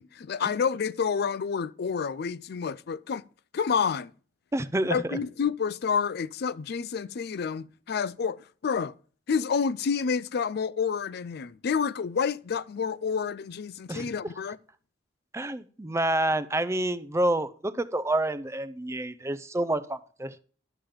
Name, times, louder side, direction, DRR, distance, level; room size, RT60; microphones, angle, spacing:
voice 1, 0.0-3.2 3.5-4.1 4.9-8.4 8.6-8.9 9.3-14.6, left 6 dB, 60° left, 0.4 m, -29 dB
voice 2, 4.5-5.2 13.9-14.1 15.3-20.4, right 1 dB, 15° right, 0.5 m, -28 dB
12.0 x 7.3 x 5.1 m
head